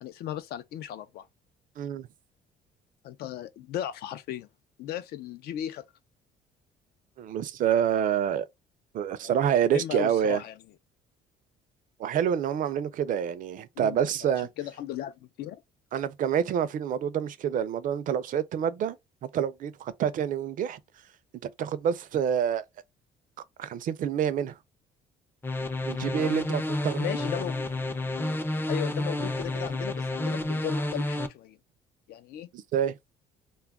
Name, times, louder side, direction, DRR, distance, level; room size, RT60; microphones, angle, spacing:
voice 1, 0.0-1.3 3.0-4.5 4.8-5.8 9.2-10.6 13.8-15.6 27.0-27.8 28.7-31.6 32.1-32.5, left 11 dB, 70° left, 0.5 m, -36 dB
voice 2, 1.8-2.1 7.2-8.5 8.9-10.4 12.0-14.5 15.9-19.0 19.3-20.8 21.6-22.6 23.6-24.6 25.9-27.0 32.7-32.9, right 9 dB, 50° right, 0.4 m, -27 dB
sound 1, 25.4-31.3, left 1 dB, 15° left, 0.4 m, -30 dB
2.3 x 2.1 x 3.4 m
cardioid pair, 110°, 17 cm